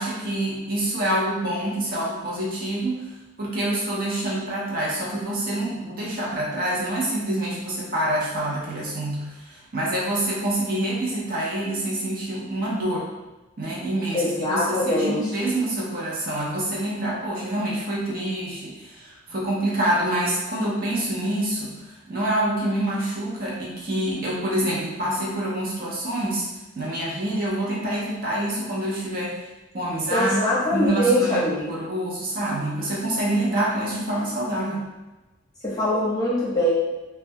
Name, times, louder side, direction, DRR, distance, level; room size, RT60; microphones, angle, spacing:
voice 1, 0.0-3.1 3.4-13.1 13.6-26.5 26.8-29.4 29.7-30.3 30.7-34.9, right 1 dB, 45° right, -5 dB, 0.6 m, -26 dB
voice 2, 14.1-15.5 30.1-31.8 35.6-36.7, equal, 20° left, -8 dB, 0.8 m, -23 dB
3.2 x 2.2 x 2.6 m, 1.1 s
head